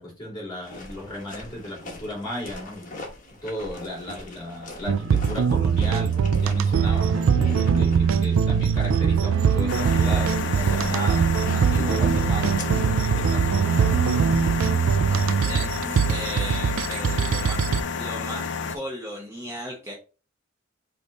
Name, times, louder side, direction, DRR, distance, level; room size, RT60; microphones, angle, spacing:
voice 1, 0.0-2.9 3.4-7.2 7.8-14.4, left 1 dB, 20° left, -3 dB, 2.5 m, -35 dB
sound 1, 0.6-13.4, left 1 dB, 40° left, 1.1 m, -41 dB
sound 2, 4.9-17.8, right 6 dB, 75° right, 0.4 m, -22 dB
sound 3, 9.7-18.8, left 5 dB, 55° left, 0.5 m, -30 dB
voice 2, 15.3-15.7 16.1-19.9, equal, 15° right, -4 dB, 1.0 m, -36 dB
5.0 x 2.7 x 3.8 m, 0.33 s
head